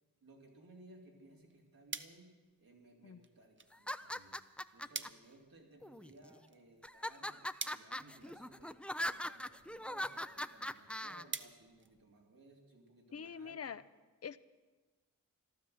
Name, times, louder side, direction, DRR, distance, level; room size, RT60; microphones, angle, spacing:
voice 1, 0.2-2.3 2.6-4.4 4.7-13.7, right 2 dB, 85° right, -1 dB, 3.0 m, -60 dB
sound 1, 1.2-12.6, right 4 dB, 35° right, 0.8 m, -51 dB
sound 2, 3.7-5.1 5.8-6.4 6.8-11.2, left 1 dB, 5° left, 0.5 m, -41 dB
voice 2, 13.1-13.8 14.2-14.4, left 7 dB, 45° left, 15 dB, 0.6 m, -44 dB
13.0 x 12.5 x 7.7 m, 1.3 s
cardioid pair, 50°, 34 cm